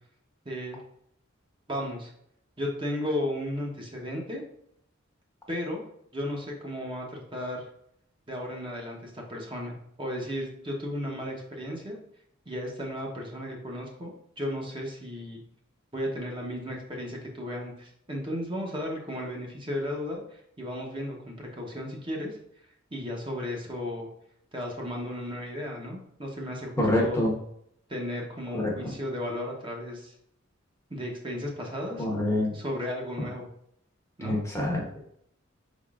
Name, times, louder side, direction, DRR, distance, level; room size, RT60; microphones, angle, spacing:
voice 1, 0.4-0.8 1.7-2.1 2.6-4.4 5.5-5.8 6.1-7.7 8.3-12.0 12.5-15.4 15.9-22.4 22.9-24.1 24.5-27.2 27.9-30.1 30.9-32.0 32.5-33.5 34.2-34.4, left 1 dB, 25° right, -1 dB, 0.8 m, -34 dB
voice 2, 26.8-27.3 28.5-28.9 32.0-32.5 34.2-34.8, left 1 dB, 15° left, -2 dB, 0.8 m, -26 dB
5.1 x 3.6 x 2.4 m, 0.70 s
head